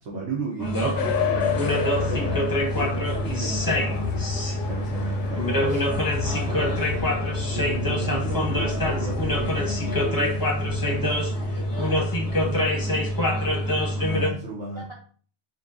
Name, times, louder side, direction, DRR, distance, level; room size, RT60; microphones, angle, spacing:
voice 1, 0.0-5.8 6.3-7.1 7.5-10.4 10.9-11.1 11.3-12.0 12.4-12.6 13.9-14.8, right 3 dB, 80° right, -4 dB, 1.2 m, -35 dB
sound 1, 0.6-14.3, left 1 dB, 20° left, 0.7 m, -25 dB
sound 2, 1.0-10.1, left 8 dB, 90° left, 0.9 m, -31 dB
voice 2, 10.8-13.7 14.7-14.9, right 1 dB, 30° right, -2 dB, 0.8 m, -43 dB
5.6 x 2.2 x 2.6 m, 0.43 s
omnidirectional pair, 1.2 m